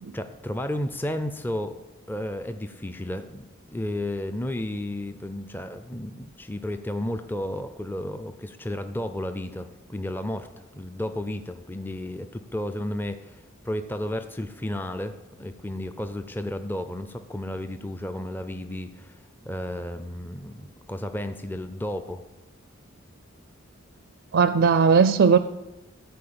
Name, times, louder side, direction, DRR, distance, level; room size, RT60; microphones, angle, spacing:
voice 1, 0.1-1.8 2.1-19.2 19.5-22.2, left 1 dB, 10° left, 9 dB, 0.4 m, -33 dB
voice 2, 24.3-25.4, right 5 dB, 55° right, 13 dB, 0.4 m, -18 dB
13.5 x 5.1 x 8.7 m, 1.0 s
head